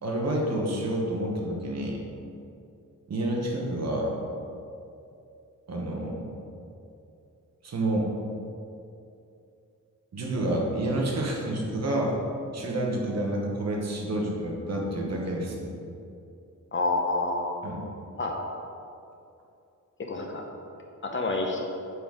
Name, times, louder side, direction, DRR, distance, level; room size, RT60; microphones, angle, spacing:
voice 1, 0.0-2.0 3.1-4.2 5.7-6.3 7.6-8.1 10.1-12.1 12.5-15.7 17.6-17.8, right 1 dB, 55° right, -1 dB, 1.2 m, -29 dB
voice 2, 16.7-17.5 18.1-18.4 20.0-20.4 21.0-21.6, left 2 dB, 40° left, 1 dB, 0.8 m, -28 dB
7.8 x 4.1 x 4.9 m, 2.6 s
wide cardioid pair, 170°, 32 cm